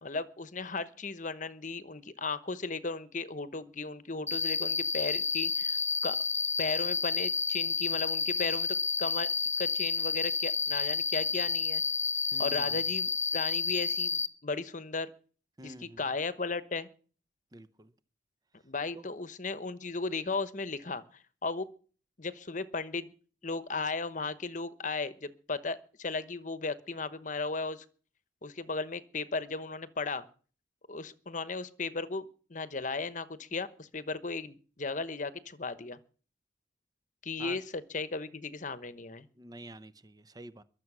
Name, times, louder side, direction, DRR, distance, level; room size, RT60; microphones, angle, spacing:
voice 1, 0.0-6.2 6.6-9.3 9.6-11.8 12.4-15.1 15.6-16.9 18.6-21.0 21.4-21.7 22.2-23.1 23.4-27.8 28.4-30.3 30.9-36.0 37.2-39.3, left 4 dB, 45° left, 14 dB, 1.0 m, -36 dB
Cricket, 4.3-14.3, left 5 dB, 15° left, 0.6 m, -30 dB
voice 2, 12.3-12.8 15.6-16.0 17.5-17.9 18.9-19.1 37.4-37.6 39.4-40.6, right 1 dB, 20° right, 14 dB, 0.7 m, -48 dB
22.5 x 7.5 x 6.2 m, 0.40 s
head